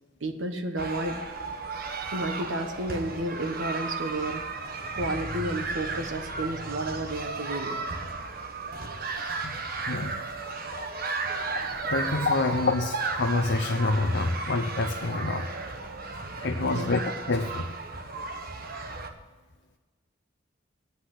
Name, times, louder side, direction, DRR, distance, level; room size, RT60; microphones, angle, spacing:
voice 1, 0.2-1.2 2.1-7.8 16.2-16.3 16.6-16.9, right 1 dB, 80° right, 6 dB, 1.2 m, -32 dB
sound 1, 0.8-19.1, right 3 dB, 50° right, 1.1 m, -34 dB
sound 2, 5.0-8.0, equal, ahead, 3.2 m, -42 dB
voice 2, 11.8-15.5 16.4-17.0 17.3-17.7, left 3 dB, 65° left, 4 dB, 0.7 m, -27 dB
10.5 x 8.3 x 9.9 m, 1.4 s
head